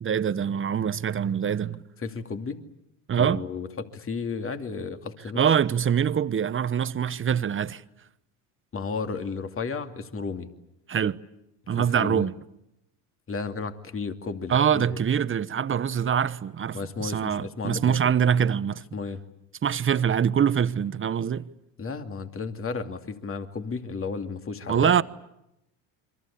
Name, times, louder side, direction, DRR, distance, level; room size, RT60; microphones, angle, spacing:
voice 1, 0.0-1.8 3.1-3.4 5.4-7.8 10.9-11.2 11.7-12.3 14.5-18.8 19.6-21.5 24.7-25.0, right 8 dB, 30° right, 1.0 m, -24 dB
voice 2, 2.0-2.6 3.2-5.4 8.7-10.5 11.7-12.3 13.3-15.0 16.7-18.0 18.9-19.2 21.8-24.9, left 4 dB, 30° left, 2.6 m, -33 dB
28.5 x 23.5 x 8.6 m
supercardioid pair, 95°, 43 cm